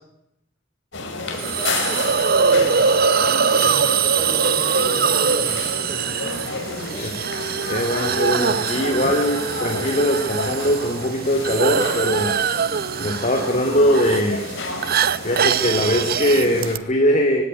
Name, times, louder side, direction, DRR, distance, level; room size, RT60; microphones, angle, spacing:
sound 1, 0.9-16.7, left 3 dB, 65° left, 5.0 m, -31 dB
voice 1, 1.2-2.9 3.2-7.1, equal, 15° right, -2 dB, 5.2 m, -36 dB
Hiss, 1.4-16.8, right 6 dB, 50° right, 0.8 m, -22 dB
voice 2, 7.6-12.4 13.0-14.5 15.2-17.4, equal, 40° left, 3 dB, 3.2 m, -21 dB
24.0 x 16.5 x 9.6 m, 0.87 s
head